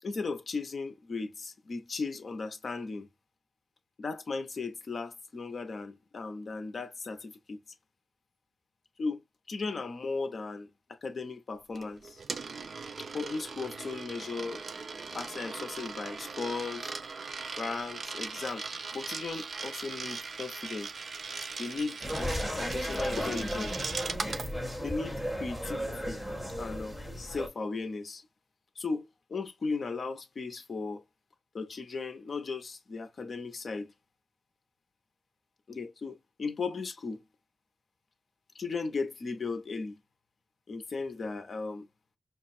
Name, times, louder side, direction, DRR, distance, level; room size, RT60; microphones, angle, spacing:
voice 1, 0.0-3.1 4.0-7.6 9.0-9.2 9.5-12.2 13.0-14.6 15.1-16.9 17.6-18.7 18.9-20.9 21.6-23.8 24.8-26.2 26.6-28.3 28.8-31.0 31.5-33.9 35.7-37.2 38.5-40.0 40.7-41.9, left 4 dB, 55° left, 0.7 m, -36 dB
Coin (dropping), 11.8-24.5, right 4 dB, 60° right, 0.4 m, -39 dB
sound 1, 22.0-27.5, equal, ahead, 1.5 m, -35 dB
5.9 x 2.2 x 2.6 m
wide cardioid pair, 170°, 0 cm